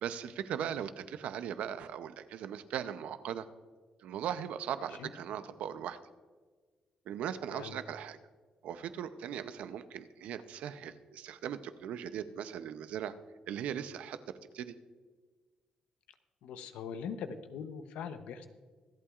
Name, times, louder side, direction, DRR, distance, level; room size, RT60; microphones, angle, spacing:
voice 1, 0.0-3.5 4.0-6.0 7.1-8.2 8.6-13.1 13.5-14.2 14.5-14.7, right 9 dB, 80° right, 12 dB, 0.6 m, -39 dB
voice 2, 16.4-18.5, left 6 dB, 90° left, 9 dB, 0.8 m, -41 dB
25.5 x 8.5 x 2.4 m, 1.4 s
cardioid pair, 80°, 2 cm